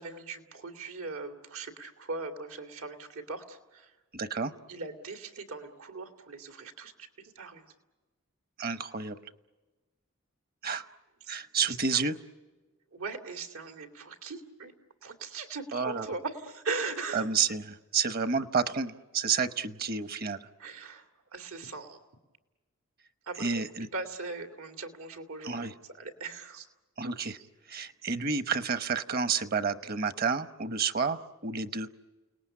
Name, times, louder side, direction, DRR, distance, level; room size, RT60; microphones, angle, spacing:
voice 1, 0.0-3.9 4.7-7.7 11.2-11.3 11.6-12.0 12.9-14.7 15.0-17.3 20.6-22.0 23.2-23.6 23.9-26.7 27.3-27.5, right 3 dB, 85° right, 6 dB, 2.5 m, -40 dB
voice 2, 4.1-4.5 8.6-9.2 10.6-10.9 11.3-12.1 15.7-16.1 17.1-20.5 23.4-23.9 25.4-25.7 27.0-27.4 27.7-31.9, right 5 dB, 45° right, 12 dB, 1.0 m, -30 dB
30.0 x 19.0 x 10.0 m, 1.2 s
head